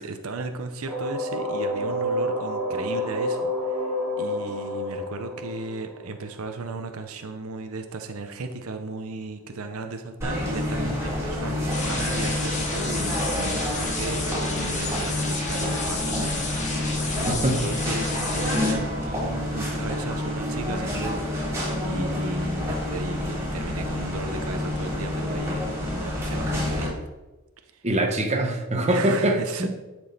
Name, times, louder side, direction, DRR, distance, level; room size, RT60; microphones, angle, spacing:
voice 1, 0.0-16.8 17.1-21.2 21.8-27.0 27.7-27.9 28.9-29.7, right 3 dB, 85° right, 7 dB, 0.8 m, -35 dB
sound 1, 0.9-6.6, left 1 dB, 5° left, 3.0 m, -29 dB
sound 2, 10.2-26.9, left 1 dB, 15° right, 3.3 m, -28 dB
sound 3, 11.7-18.7, left 3 dB, 35° left, 1.8 m, -32 dB
voice 2, 17.3-17.6 27.8-29.7, right 1 dB, 30° right, 2 dB, 1.2 m, -23 dB
10.5 x 6.3 x 4.2 m, 1.1 s
head